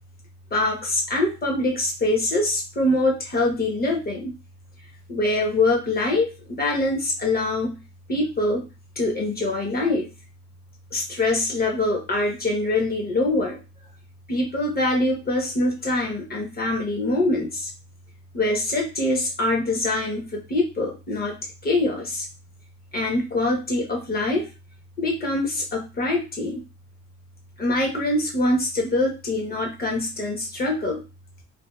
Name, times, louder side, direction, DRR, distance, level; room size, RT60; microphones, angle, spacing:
voice 1, 0.5-4.3 5.1-7.8 8.1-8.6 9.0-10.1 10.9-13.6 14.3-17.7 18.3-21.3 21.6-22.2 22.9-24.5 25.0-26.6 27.6-31.0, left 2 dB, 30° left, 0 dB, 1.0 m, -24 dB
2.8 x 2.4 x 2.3 m, 0.29 s
cardioid pair, 90°, 30 cm